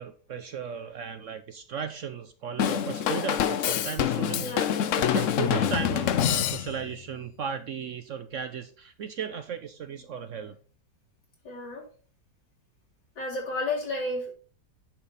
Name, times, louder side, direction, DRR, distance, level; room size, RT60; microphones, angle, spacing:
voice 1, 0.0-10.6, right 7 dB, 65° right, 9 dB, 0.8 m, -36 dB
Drum kit / Drum, 2.6-7.0, left 9 dB, 65° left, 0.8 m, -26 dB
voice 2, 4.4-4.8 11.4-11.9 13.2-14.3, left 2 dB, 85° left, -2 dB, 3.9 m, -32 dB
10.5 x 5.7 x 3.9 m, 0.39 s
omnidirectional pair, 1.8 m